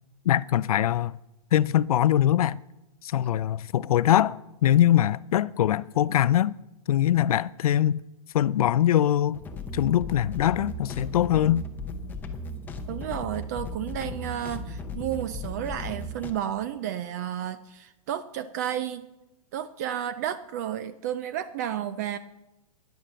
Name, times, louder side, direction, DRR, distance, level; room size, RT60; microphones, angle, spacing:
voice 1, 0.2-1.2 1.5-2.6 3.0-6.5 6.9-8.0 8.3-9.4 9.7-11.6, left 11 dB, 70° left, 0.5 m, -22 dB
sound 1, 9.3-16.3, left 1 dB, 10° left, 0.7 m, -36 dB
voice 2, 12.9-19.0 19.5-22.2, right 10 dB, 30° right, 0.4 m, -32 dB
11.5 x 10.5 x 6.7 m
hypercardioid pair, 160°, 19 cm